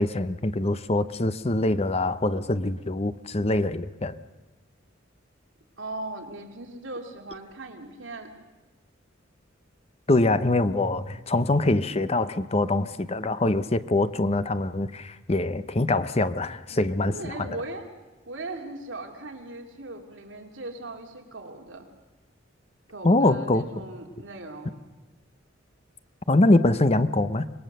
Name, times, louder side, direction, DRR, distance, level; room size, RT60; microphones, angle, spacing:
voice 1, 0.0-4.2 10.1-17.3 23.0-23.6 26.3-27.4, left 2 dB, 30° left, 12 dB, 0.8 m, -24 dB
voice 2, 5.8-8.3 16.7-17.8 18.3-21.9 22.9-24.8, right 2 dB, 70° right, 3 dB, 2.6 m, -39 dB
26.0 x 20.0 x 6.7 m, 1.2 s
head